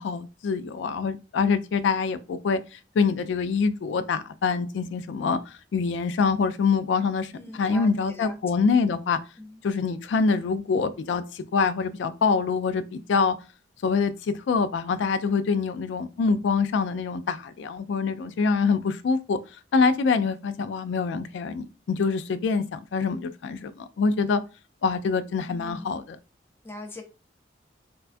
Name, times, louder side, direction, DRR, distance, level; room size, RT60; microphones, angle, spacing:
voice 1, 0.0-9.2 9.6-13.4 13.8-19.4 19.7-24.4 24.8-26.2, left 5 dB, 85° left, 0.3 m, -25 dB
voice 2, 7.3-8.4 9.4-9.6 25.5-26.1 26.6-27.0, left 1 dB, 15° left, 0.5 m, -41 dB
4.4 x 2.2 x 2.4 m
head